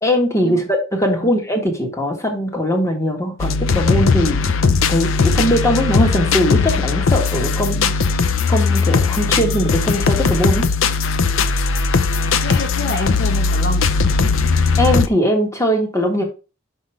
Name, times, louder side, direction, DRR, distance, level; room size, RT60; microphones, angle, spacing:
voice 1, 0.0-4.5 4.9-10.7 14.8-16.2, equal, 15° left, 1.8 m, -20 dB
sound 1, 3.4-15.1, left 4 dB, 80° left, 0.6 m, -18 dB
voice 2, 12.3-14.0, left 1 dB, 50° left, 1.2 m, -27 dB
5.9 x 5.3 x 4.9 m
head